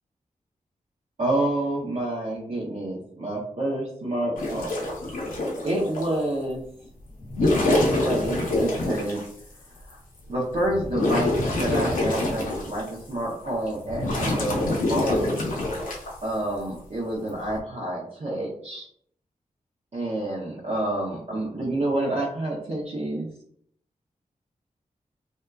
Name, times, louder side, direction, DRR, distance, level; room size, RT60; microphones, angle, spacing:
voice 1, 1.2-4.8 5.6-6.6 7.4-9.2 9.9-10.0 10.3-15.5 16.2-18.9 19.9-23.3, right 1 dB, 55° right, -5 dB, 0.7 m, -28 dB
sound 1, 4.4-6.1 7.2-9.3 9.9-10.0 10.5-13.0 13.4-16.1 17.3-17.6, left 1 dB, 80° left, 0.7 m, -25 dB
2.7 x 2.3 x 2.2 m, 0.64 s
wide cardioid pair, 75°, 14 cm